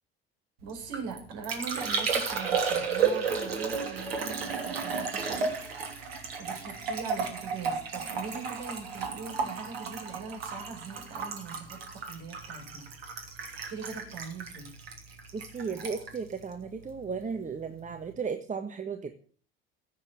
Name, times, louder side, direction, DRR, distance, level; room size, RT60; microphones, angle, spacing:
voice 1, 0.6-5.6 6.4-12.9 13.5-14.7, right 5 dB, 55° right, 3 dB, 5.8 m, -41 dB
Liquid, 0.7-17.3 17.6-18.1, right 5 dB, 75° right, 3.0 m, -33 dB
voice 2, 15.3-19.2, right 5 dB, 25° right, 6 dB, 1.6 m, -35 dB
16.0 x 8.6 x 7.4 m, 0.43 s
figure-of-eight pair, 60°, 30 cm